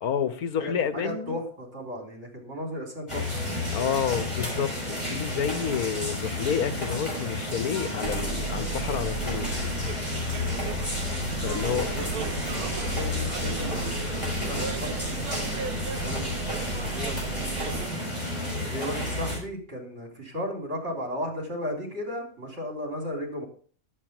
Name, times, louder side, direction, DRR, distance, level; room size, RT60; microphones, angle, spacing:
voice 1, 0.0-1.4 3.7-9.5 11.4-11.8, left 8 dB, 85° left, 12 dB, 1.5 m, -29 dB
voice 2, 0.6-4.0 11.4-12.3 12.6-17.9 18.7-23.5, equal, 50° right, 1 dB, 4.3 m, -36 dB
sound 1, 3.1-19.4, left 1 dB, 20° left, 5.9 m, -31 dB
Bus, 8.0-17.9, right 6 dB, 85° right, 1.3 m, -35 dB
11.0 x 9.0 x 6.0 m, 0.44 s
omnidirectional pair, 1.5 m